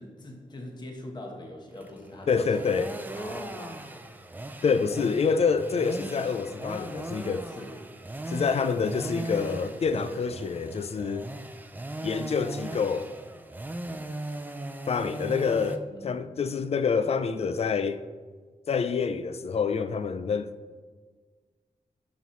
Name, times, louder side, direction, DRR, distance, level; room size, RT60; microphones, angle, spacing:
voice 1, 0.0-2.3 3.1-4.0 7.5-7.8 15.9-16.2, left 1 dB, 30° left, 1.1 m, -42 dB
sound 1, 1.7-15.8, right 1 dB, 15° right, 0.5 m, -38 dB
voice 2, 2.3-3.0 4.6-7.5 8.3-11.3 12.0-13.1 14.9-18.0 18.7-20.5, left 5 dB, 45° left, 0.4 m, -27 dB
12.0 x 5.7 x 3.1 m
wide cardioid pair, 140°, 14 cm